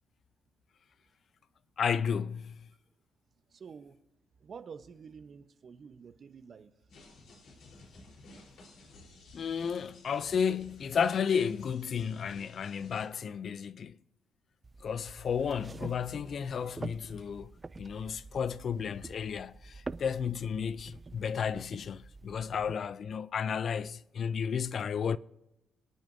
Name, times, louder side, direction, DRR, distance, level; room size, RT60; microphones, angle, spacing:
voice 1, 1.8-2.7 9.3-14.0 14.8-25.2, left 7 dB, 55° left, 0.5 m, -33 dB
voice 2, 3.5-4.0 4.4-6.7, right 6 dB, 50° right, 1.0 m, -48 dB
sound 1, 6.9-13.1, left 2 dB, 70° left, 4.0 m, -54 dB
Footsteps on Wood, 14.6-22.7, right 3 dB, 25° right, 0.4 m, -46 dB
26.5 x 9.1 x 2.7 m
cardioid pair, 90°, 0 cm